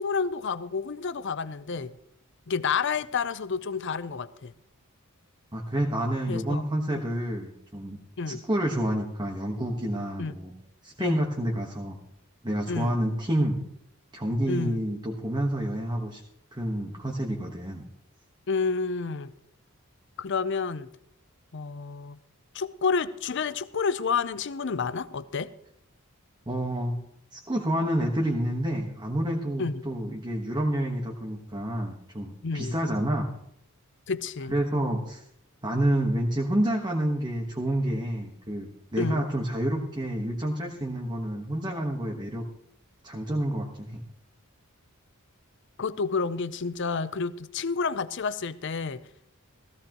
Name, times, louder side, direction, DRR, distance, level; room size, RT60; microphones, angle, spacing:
voice 1, 0.0-2.0 2.5-4.5 6.3-6.6 6.9-7.0 8.2-8.4 10.2-10.3 11.0-11.2 12.7-13.0 14.5-14.8 18.5-19.3 20.2-20.9 21.5-22.2 22.5-25.5 29.6-29.8 32.4-32.8 34.1-34.5 39.0-39.2 45.8-49.0, left 5 dB, 55° left, 0.6 m, -30 dB
voice 2, 5.5-8.0 8.3-10.5 10.8-12.0 12.4-13.6 14.1-16.2 16.5-17.8 26.5-27.0 27.3-33.3 34.5-35.2 35.6-42.5 43.0-44.0, right 1 dB, 20° right, 1.3 m, -29 dB
16.0 x 16.0 x 3.0 m
head